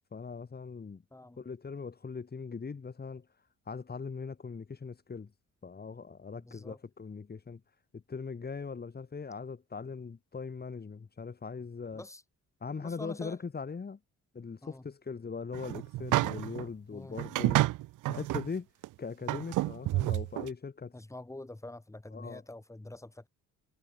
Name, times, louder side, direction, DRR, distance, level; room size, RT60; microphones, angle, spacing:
voice 1, 0.1-1.0 1.4-3.3 3.7-5.3 5.6-7.6 7.9-12.0 12.6-14.0 14.3-17.7 18.1-18.7 19.0-20.9 22.1-22.4, left 5 dB, 30° left, 3.1 m, -40 dB
voice 2, 1.1-1.5 6.3-6.8 11.9-12.2 12.8-13.4 14.6-14.8 16.9-17.2 20.9-23.3, left 2 dB, 10° left, 2.5 m, -46 dB
sound 1, 15.5-16.7 17.2-18.5 18.8-18.9 19.3-20.5, right 17 dB, 90° right, 1.2 m, -29 dB
cardioid pair, 90°, 30 cm